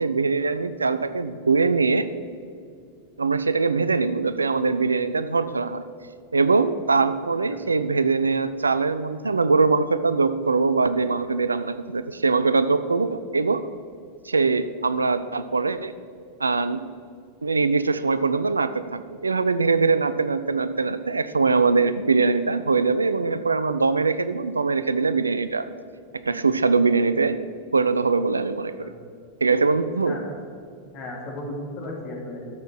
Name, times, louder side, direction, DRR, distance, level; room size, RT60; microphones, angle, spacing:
voice 1, 0.0-2.1 3.2-5.9 6.3-13.6 14.2-15.9 16.4-16.9 17.4-25.6 26.3-27.4 27.7-28.9 29.4-30.2, right 4 dB, 75° right, 13 dB, 0.4 m, -22 dB
voice 2, 30.0-30.3 30.9-32.4, left 1 dB, 40° left, -2 dB, 2.9 m, -35 dB
12.5 x 7.2 x 4.7 m, 2.3 s
figure-of-eight pair, 90°, 0 cm